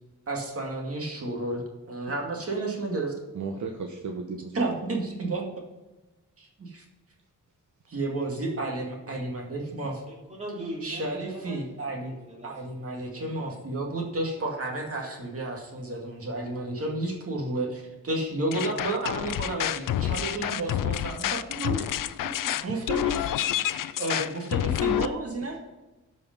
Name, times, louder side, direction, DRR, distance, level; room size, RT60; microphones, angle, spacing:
voice 1, 0.3-1.6 1.9-3.1 4.5-5.5 6.4-6.8 7.9-10.0 10.8-12.1 12.4-21.7 22.4-23.5 24.0-25.6, right 2 dB, 45° right, 0 dB, 2.2 m, -31 dB
voice 2, 3.3-4.7 21.7-21.9 22.4-22.9 25.4-25.6, right 4 dB, 65° right, 3 dB, 1.0 m, -36 dB
voice 3, 10.1-13.5, right 1 dB, 20° right, -2 dB, 2.9 m, -41 dB
sound 1, 18.5-25.1, left 11 dB, 85° left, 0.5 m, -28 dB
12.5 x 5.3 x 5.3 m, 1.1 s
wide cardioid pair, 130°, 32 cm